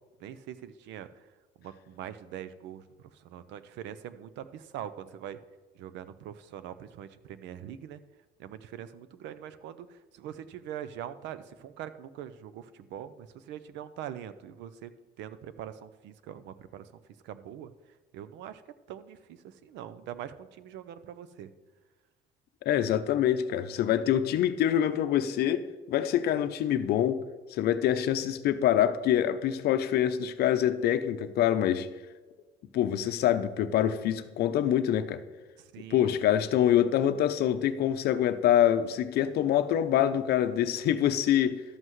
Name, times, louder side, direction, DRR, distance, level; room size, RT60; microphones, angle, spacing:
voice 1, 0.2-1.3 1.6-5.4 5.7-8.0 8.4-14.9 15.2-16.9 17.2-17.7 18.1-18.6 18.9-21.5 35.6-36.2, right 10 dB, 75° right, 13 dB, 0.6 m, -43 dB
voice 2, 22.6-27.2 27.5-31.9 32.7-35.2 35.9-41.6, left 10 dB, 60° left, 11 dB, 0.6 m, -25 dB
12.5 x 7.7 x 3.1 m, 1.3 s
cardioid pair, 145°, 18 cm